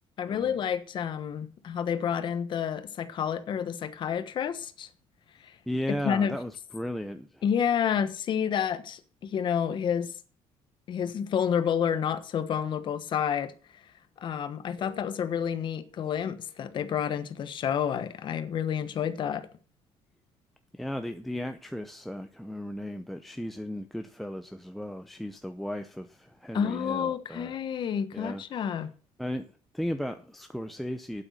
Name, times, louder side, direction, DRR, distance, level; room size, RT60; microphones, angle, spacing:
voice 1, 0.2-4.9 5.4-5.5 6.0-6.4 7.4-10.1 10.9-13.5 14.2-19.5 26.5-28.9, left 8 dB, 45° left, 1.1 m, -29 dB
voice 2, 5.7-7.4 20.7-27.5 28.1-28.7 29.2-31.2, equal, ahead, 0.6 m, -35 dB
Bass guitar, 14.8-17.1, left 4 dB, 25° left, 3.0 m, -54 dB
9.0 x 8.2 x 6.5 m
cardioid pair, 140°, 11 cm